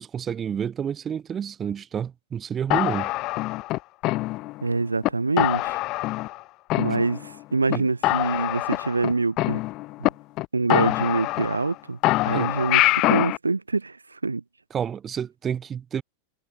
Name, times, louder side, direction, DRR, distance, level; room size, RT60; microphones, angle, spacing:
voice 1, 0.0-3.1 7.7-7.9 12.3-12.5 14.7-16.0, right 8 dB, 25° right, 1.7 m, -29 dB
sound 1, 2.7-4.7 5.0-5.1 5.4-6.4 6.7-7.4 7.7-7.8 8.0-10.1 10.4-10.5 10.7-11.7 12.0-13.4, left 19 dB, 40° left, 1.1 m, -24 dB
voice 2, 4.6-5.8 6.8-9.6 10.0-10.1 10.5-12.0 12.2-14.4, right 3 dB, 80° right, 3.8 m, -25 dB
figure-of-eight pair, 90°, 0 cm